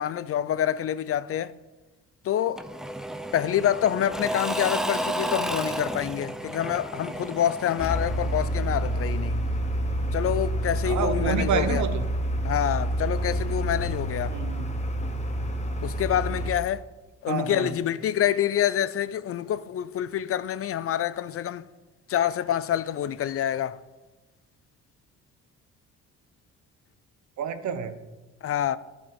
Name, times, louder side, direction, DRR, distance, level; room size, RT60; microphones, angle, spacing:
voice 1, 0.0-1.5 2.2-2.6 3.3-9.4 10.1-11.8 12.4-14.4 15.8-16.8 17.2-21.6 22.1-23.8 28.4-28.8, left 10 dB, 50° left, 0.4 m, -27 dB
Engine / Mechanisms / Drill, 2.6-9.2, right 1 dB, ahead, 0.6 m, -32 dB
sound 1, 7.8-16.5, right 1 dB, 20° left, 1.0 m, -28 dB
voice 2, 10.8-12.1 14.3-14.8 17.3-17.7 27.4-28.0, right 6 dB, 70° right, 0.9 m, -29 dB
11.0 x 5.4 x 5.4 m
cardioid pair, 90°, 30 cm